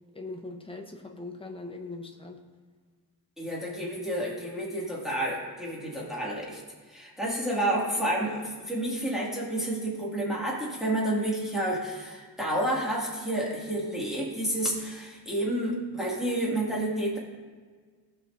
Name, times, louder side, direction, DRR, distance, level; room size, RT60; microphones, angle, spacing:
voice 1, 0.1-2.4, left 3 dB, 15° left, 3 dB, 0.8 m, -40 dB
voice 2, 3.4-6.6 6.9-17.2, right 1 dB, ahead, -5 dB, 2.1 m, -30 dB
18.5 x 6.4 x 2.6 m, 1.5 s
wide cardioid pair, 150°, 39 cm